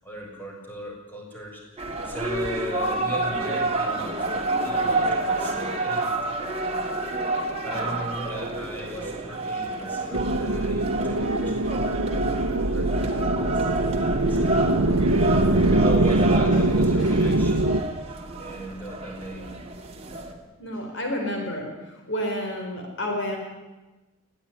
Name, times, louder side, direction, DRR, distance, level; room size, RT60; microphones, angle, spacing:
voice 1, 0.0-6.8 7.6-11.9 12.5-14.6 15.7-17.9 18.4-19.5, equal, 10° left, -2 dB, 7.0 m, -37 dB
sound 1, 1.8-20.3, right 2 dB, 25° right, 3.0 m, -29 dB
sound 2, 10.1-17.8, right 2 dB, 70° right, 1.1 m, -22 dB
voice 2, 20.6-23.4, left 1 dB, 55° left, 2 dB, 4.5 m, -30 dB
21.0 x 17.0 x 9.9 m, 1.1 s
head